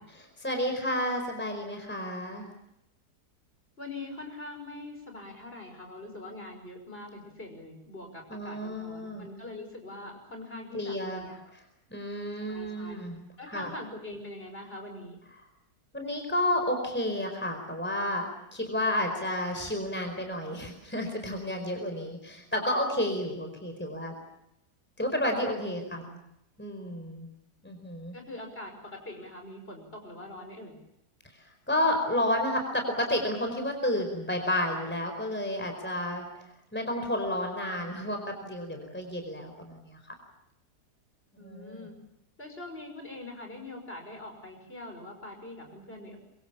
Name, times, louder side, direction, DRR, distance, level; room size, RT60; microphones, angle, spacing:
voice 1, 0.1-2.5 8.3-9.3 10.7-11.2 11.9-13.7 15.9-18.2 18.5-24.1 25.0-26.0 26.6-27.3 27.6-28.1 31.7-36.3 36.7-40.0 41.4-41.9, left 1 dB, 5° left, 4 dB, 4.7 m, -31 dB
voice 2, 3.8-11.4 12.5-13.0 13.4-15.2 26.0-26.2 28.1-30.8 41.4-42.0 42.4-46.2, left 2 dB, 35° left, 3 dB, 6.0 m, -43 dB
26.0 x 23.5 x 7.3 m, 0.83 s
omnidirectional pair, 1.7 m